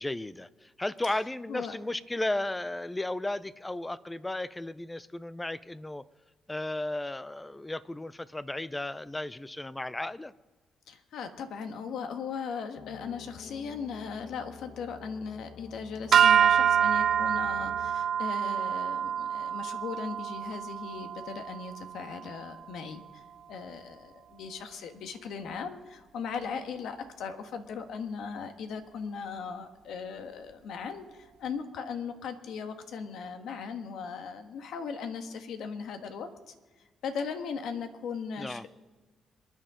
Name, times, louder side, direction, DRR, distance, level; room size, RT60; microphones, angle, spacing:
voice 1, 0.0-6.0 6.5-10.3 38.4-38.7, left 1 dB, 15° left, 17 dB, 0.6 m, -34 dB
voice 2, 10.9-36.5 37.0-38.7, left 6 dB, 75° left, 7 dB, 1.5 m, -38 dB
sound 1, 12.8-17.9, left 6 dB, 55° left, 1.1 m, -48 dB
sound 2, 16.1-22.5, right 8 dB, 60° right, 0.3 m, -26 dB
27.0 x 10.0 x 3.8 m, 1.3 s
cardioid pair, 90°, 0 cm